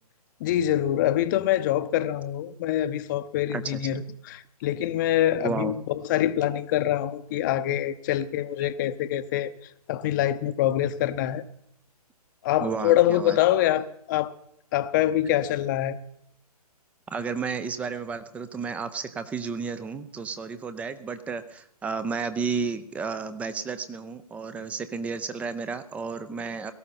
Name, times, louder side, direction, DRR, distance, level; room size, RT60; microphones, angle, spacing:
voice 1, 0.4-9.5 9.9-11.4 12.4-14.3 14.7-16.0, left 12 dB, 30° left, 0.7 m, -25 dB
voice 2, 5.4-5.8 12.6-13.4 17.1-26.7, right 5 dB, 5° right, 0.5 m, -32 dB
17.5 x 13.5 x 4.2 m
figure-of-eight pair, 135°, 20 cm